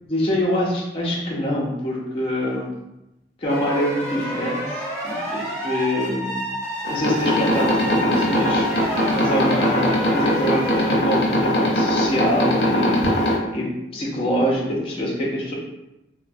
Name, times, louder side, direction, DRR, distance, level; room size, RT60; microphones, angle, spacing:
voice 1, 0.1-2.7 3.4-6.5 6.9-15.5, equal, 30° left, -4 dB, 0.6 m, -25 dB
sound 1, 3.5-10.8, equal, 20° right, 1.2 m, -29 dB
sound 2, 6.8-13.4, left 1 dB, 75° left, 0.6 m, -21 dB
3.1 x 2.1 x 2.5 m, 0.94 s
head